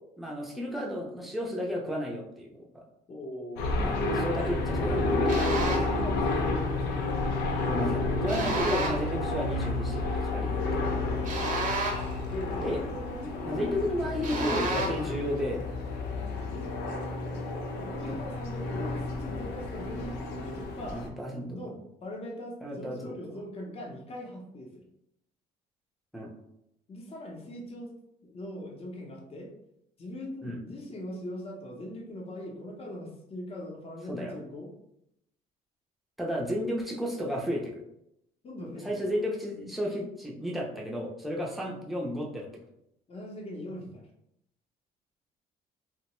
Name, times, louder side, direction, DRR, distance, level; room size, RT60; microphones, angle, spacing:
voice 1, 0.2-2.8 3.8-5.3 7.7-10.8 12.6-12.8 13.4-15.7 18.1-18.2 20.8-21.8 22.6-23.2 26.1-26.3 30.4-30.6 34.1-34.3 36.2-37.8 38.6-42.5, equal, ahead, -2 dB, 0.6 m, -33 dB
voice 2, 3.1-3.7 4.9-7.0 10.9-11.3 12.3-13.3 16.5-16.7 17.8-21.0 21.4-24.8 26.9-27.9 28.2-29.5 30.0-34.7 38.4-39.1 43.1-44.0, left 1 dB, 35° left, 0 dB, 0.7 m, -40 dB
sound 1, 3.6-21.1, left 2 dB, 90° left, 0.5 m, -31 dB
sound 2, 5.3-6.0 8.3-9.1 11.2-12.2 14.2-15.1, right 2 dB, 50° right, 0.7 m, -31 dB
2.7 x 2.1 x 3.0 m, 0.80 s
cardioid pair, 110°, 17 cm